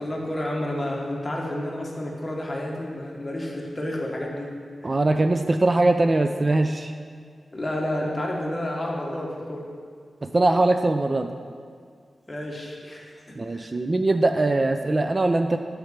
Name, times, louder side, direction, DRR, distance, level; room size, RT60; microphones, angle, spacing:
voice 1, 0.0-4.5 4.8-4.9 7.5-9.7 12.3-13.7, left 1 dB, 25° left, -2 dB, 1.4 m, -30 dB
voice 2, 4.8-6.9 10.2-11.3 13.4-15.6, right 2 dB, 35° right, 7 dB, 0.3 m, -21 dB
6.3 x 4.8 x 6.6 m, 2.1 s
wide cardioid pair, 75°, 0 cm